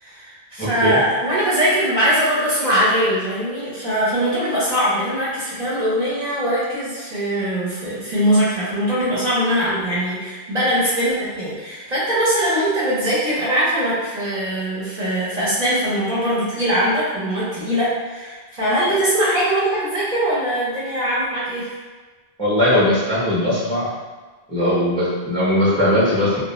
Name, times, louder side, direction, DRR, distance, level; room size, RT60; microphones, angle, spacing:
voice 1, 0.0-21.7, equal, 45° right, -9 dB, 0.7 m, -21 dB
voice 2, 0.6-1.0 22.4-23.9 24.5-26.4, left 1 dB, 5° left, -8 dB, 0.6 m, -19 dB
2.3 x 2.1 x 3.0 m, 1.3 s
omnidirectional pair, 1.1 m